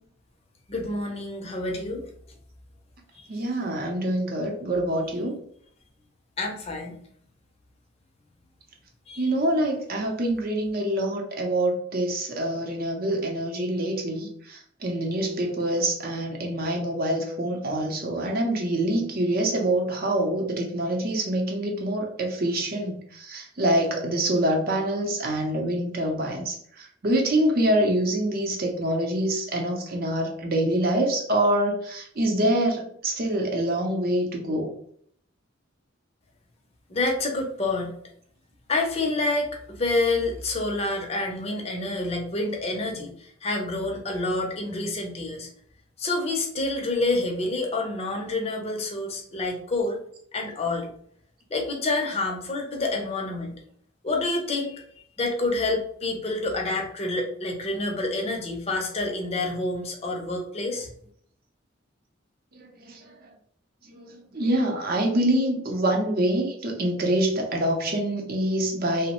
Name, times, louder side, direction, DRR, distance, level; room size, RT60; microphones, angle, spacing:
voice 1, 0.7-2.0 3.2-3.3 6.4-7.0 9.1-9.2 36.9-37.9 38.7-45.5 46.0-50.0 50.3-50.9 51.5-53.6 54.0-54.8 55.2-60.9, left 2 dB, 30° left, 1 dB, 0.6 m, -28 dB
voice 2, 3.3-5.4 9.2-34.7 62.5-63.1 63.9-69.1, right 1 dB, 50° right, 1 dB, 0.6 m, -25 dB
3.0 x 2.0 x 2.9 m, 0.65 s
head